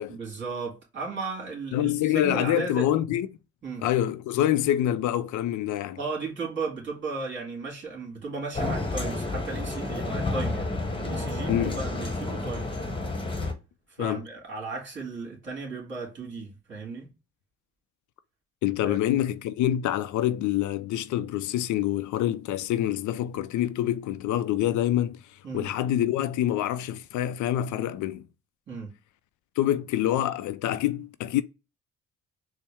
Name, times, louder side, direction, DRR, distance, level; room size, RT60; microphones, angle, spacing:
voice 1, 0.1-2.9 3.6-3.9 6.0-12.7 14.0-17.1 18.8-19.0 25.4-25.7 28.7-28.9, right 4 dB, 40° right, 2.3 m, -35 dB
voice 2, 1.7-3.3 3.8-6.0 11.5-11.8 14.0-14.3 18.6-25.2 25.5-28.3 29.6-31.4, left 12 dB, 75° left, 0.4 m, -26 dB
sound 1, 8.5-13.5, left 2 dB, 15° left, 1.1 m, -30 dB
4.3 x 2.1 x 3.4 m
cardioid pair, 90°, 30 cm